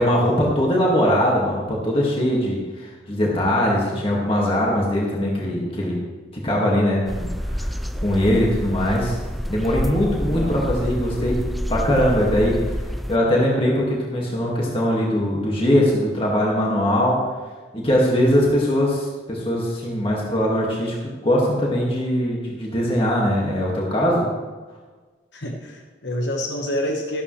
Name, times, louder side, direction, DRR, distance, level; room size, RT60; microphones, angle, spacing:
voice 1, 0.0-6.0 6.4-9.2 9.5-11.4 11.7-12.8 13.1-17.2 17.7-24.3, equal, 30° left, -3 dB, 2.0 m, -21 dB
sound 1, 7.1-13.2, equal, ahead, 0.3 m, -28 dB
voice 2, 10.2-10.6 13.6-13.7 18.1-18.5 25.3-27.2, equal, 70° left, 1 dB, 1.3 m, -28 dB
15.0 x 12.5 x 3.3 m, 1.4 s
head